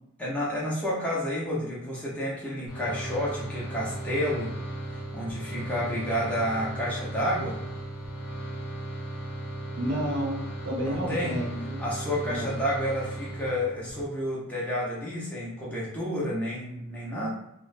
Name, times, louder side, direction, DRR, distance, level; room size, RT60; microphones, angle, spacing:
voice 1, 0.2-4.5 4.8-7.6 10.8-11.4 11.8-17.3, equal, 5° left, -7 dB, 0.6 m, -30 dB
Shruti Box, 2.7-14.0, right 1 dB, 90° left, 0.8 m, -36 dB
voice 2, 9.8-11.8 12.2-12.5, equal, 65° right, -3 dB, 0.8 m, -31 dB
2.4 x 2.1 x 2.5 m, 0.80 s
head